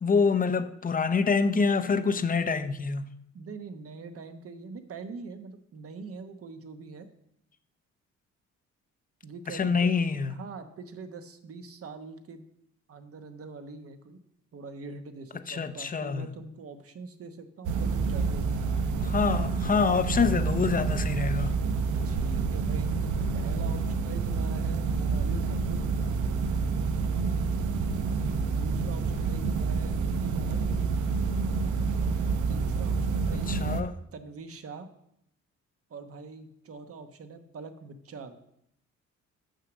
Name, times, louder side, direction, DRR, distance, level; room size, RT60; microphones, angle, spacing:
voice 1, 0.0-3.1 9.5-10.3 15.5-16.3 19.0-21.6 33.3-34.0, left 5 dB, 30° left, 0.6 m, -26 dB
voice 2, 3.3-7.1 9.2-9.9 10.3-12.5 12.9-14.2 14.5-18.6 22.0-25.8 28.5-30.7 32.5-33.5 34.1-34.9 35.9-38.4, right 4 dB, 50° right, 1.1 m, -43 dB
sound 1, 17.6-33.8, right 4 dB, 80° right, 0.8 m, -28 dB
6.6 x 6.5 x 6.1 m
cardioid pair, 90°, 30 cm